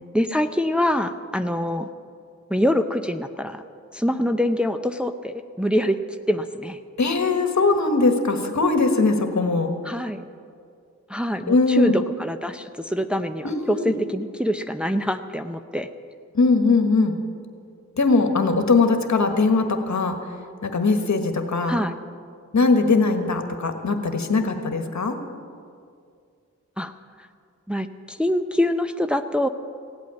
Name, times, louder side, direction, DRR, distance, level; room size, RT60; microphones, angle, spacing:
voice 1, 0.1-1.9 2.5-3.6 3.9-6.0 6.3-6.8 9.8-10.2 11.1-15.9 21.7-21.9 26.8-26.9 27.7-29.5, equal, 5° right, 7 dB, 0.6 m, -25 dB
voice 2, 7.0-9.7 11.5-12.0 13.4-13.9 16.3-17.1 18.0-20.2 20.6-21.8 22.5-25.2, left 3 dB, 65° left, 6 dB, 1.5 m, -20 dB
16.5 x 8.4 x 9.5 m, 2.3 s
wide cardioid pair, 70°, 30 cm